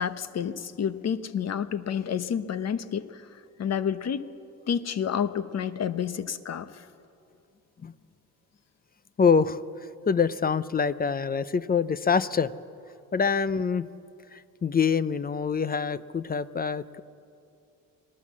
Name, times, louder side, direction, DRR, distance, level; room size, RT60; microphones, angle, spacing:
voice 1, 0.0-4.3 4.7-6.9, left 8 dB, 45° left, 12 dB, 1.0 m, -30 dB
voice 2, 9.2-9.6 10.1-12.5 13.1-13.9 14.3-17.0, left 6 dB, 25° left, 15 dB, 0.5 m, -25 dB
26.5 x 18.5 x 7.4 m, 2.6 s
cardioid pair, 115°, 35 cm